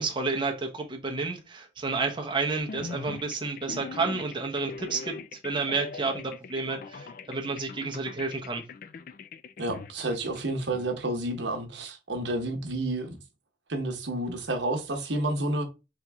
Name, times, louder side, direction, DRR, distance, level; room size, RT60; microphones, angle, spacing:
voice 1, 0.0-5.2 5.4-8.6, right 4 dB, 25° right, 0.8 m, -30 dB
sound 1, 2.6-10.9, left 4 dB, 45° left, 0.3 m, -42 dB
voice 2, 9.6-13.2 13.7-15.6, right 1 dB, 70° right, 1.0 m, -30 dB
3.8 x 3.0 x 3.5 m
head